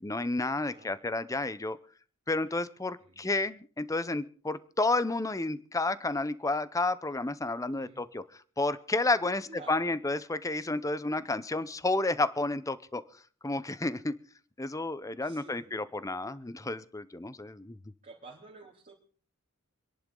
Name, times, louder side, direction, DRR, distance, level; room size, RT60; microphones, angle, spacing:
voice 1, 0.0-1.8 2.3-8.2 8.6-13.0 13.4-14.1 14.6-17.8, left 2 dB, 15° left, 15 dB, 0.7 m, -31 dB
voice 2, 3.0-3.3 7.8-8.0 9.5-9.9 15.0-15.9 18.0-18.9, right 3 dB, 35° right, -4 dB, 3.0 m, -51 dB
27.5 x 11.0 x 3.9 m, 0.42 s
head